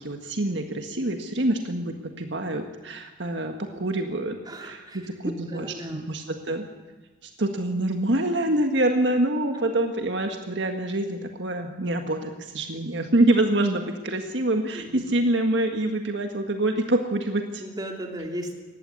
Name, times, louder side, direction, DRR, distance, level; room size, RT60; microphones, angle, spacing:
voice 1, 0.0-5.7 5.9-6.7 7.4-17.6, right 1 dB, 65° right, 5 dB, 1.8 m, -26 dB
voice 2, 4.4-6.1 17.6-18.5, equal, 20° right, 2 dB, 3.1 m, -35 dB
19.5 x 15.0 x 9.7 m, 1.2 s
head